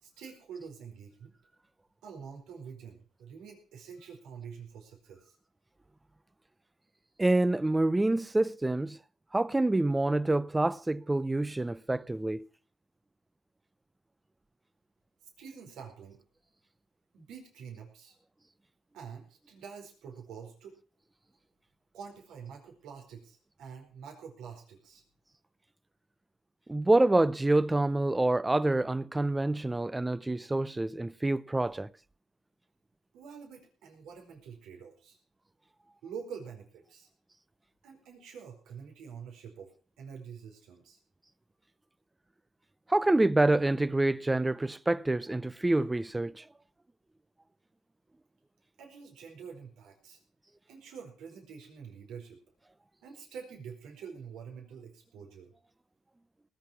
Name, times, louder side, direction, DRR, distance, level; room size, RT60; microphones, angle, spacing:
voice 1, 0.0-1.3 2.0-5.3 15.4-16.2 17.1-18.1 18.9-20.8 21.9-25.0 33.1-35.2 36.0-37.1 37.8-39.7 40.0-41.0 48.8-50.2 50.7-52.4 53.0-55.5, right 6 dB, 85° right, 4.6 m, -46 dB
voice 2, 7.2-9.0 9.3-12.5 26.7-31.9 42.9-46.4, right 2 dB, 15° right, 0.6 m, -27 dB
19.5 x 8.1 x 5.8 m
cardioid pair, 90°, 0 cm